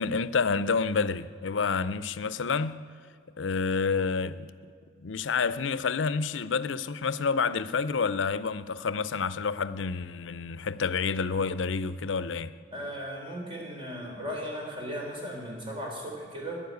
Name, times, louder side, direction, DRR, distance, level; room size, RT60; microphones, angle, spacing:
voice 1, 0.0-2.8 3.4-4.5 5.0-12.5, left 5 dB, 75° left, 0.6 m, -29 dB
voice 2, 12.7-16.6, equal, 30° right, 3.5 m, -36 dB
12.0 x 10.0 x 9.2 m
head